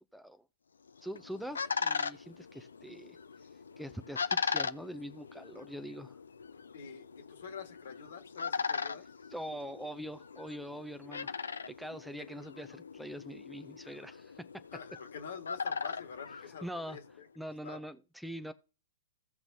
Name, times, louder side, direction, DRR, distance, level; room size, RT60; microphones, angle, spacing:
voice 1, 0.1-0.4 1.0-3.2 3.8-6.2 9.3-11.4 11.7-14.5 16.6-17.0 17.4-18.5, equal, ahead, 0.5 m, -43 dB
sound 1, 0.9-17.1, left 5 dB, 80° left, 0.6 m, -39 dB
voice 2, 6.7-9.0 12.2-12.3 14.7-17.3 17.6-17.8, left 6 dB, 65° left, 1.7 m, -47 dB
16.5 x 5.9 x 2.7 m
hypercardioid pair, 115°, 0 cm